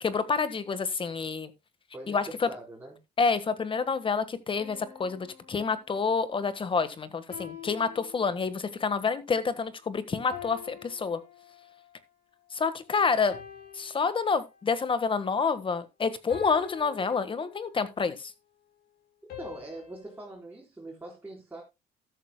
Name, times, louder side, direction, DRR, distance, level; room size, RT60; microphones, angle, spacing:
voice 1, 0.0-1.5 2.1-2.5 3.2-11.2 12.5-13.4 13.7-18.3, left 5 dB, 30° left, 1.4 m, -28 dB
voice 2, 1.9-3.0 19.4-21.6, right 2 dB, 10° right, 4.1 m, -43 dB
sound 1, 4.6-6.2 7.3-8.8 10.3-12.0 13.3-14.8 16.3-18.0 19.3-20.3, left 9 dB, 70° left, 6.0 m, -46 dB
13.5 x 11.5 x 2.2 m
cardioid pair, 110°, 17 cm